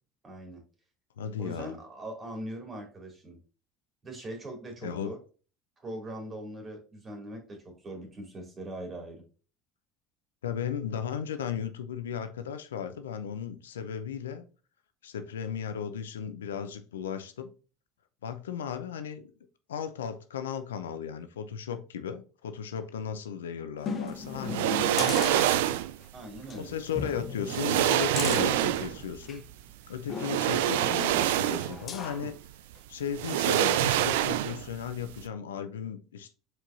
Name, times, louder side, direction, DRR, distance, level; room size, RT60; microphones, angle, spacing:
voice 1, 0.2-0.6 1.4-3.4 4.0-5.2 5.8-9.2 26.1-26.7, right 1 dB, 30° right, 2.6 m, -41 dB
voice 2, 1.2-1.8 4.8-5.1 10.4-14.5 15.0-17.5 18.2-19.3 19.7-25.8 26.5-29.4 29.9-32.4 32.9-36.3, left 8 dB, 85° left, 0.5 m, -36 dB
sound 1, 23.8-26.0 26.4-26.6 26.9-29.5 30.1-32.3 32.8-32.9, left 5 dB, 40° left, 0.9 m, -37 dB
sound 2, 24.4-26.0 27.0-27.1 27.5-29.1 30.2-31.9 32.2-32.3 33.1-34.8 35.0-35.2, right 13 dB, 75° right, 0.3 m, -26 dB
4.6 x 4.5 x 2.5 m
hypercardioid pair, 75°, 0 cm